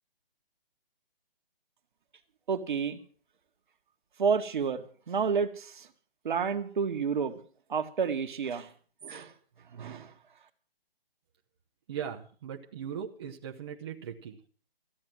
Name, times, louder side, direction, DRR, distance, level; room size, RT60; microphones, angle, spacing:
voice 1, 2.5-3.0 4.2-5.9 6.2-7.3 7.7-8.7 9.0-9.3 9.7-10.1, right 6 dB, 55° right, 7 dB, 1.6 m, -30 dB
voice 2, 11.9-14.4, right 8 dB, 25° right, 2 dB, 0.9 m, -39 dB
14.5 x 8.9 x 7.5 m, 0.43 s
hypercardioid pair, 160°, 30 cm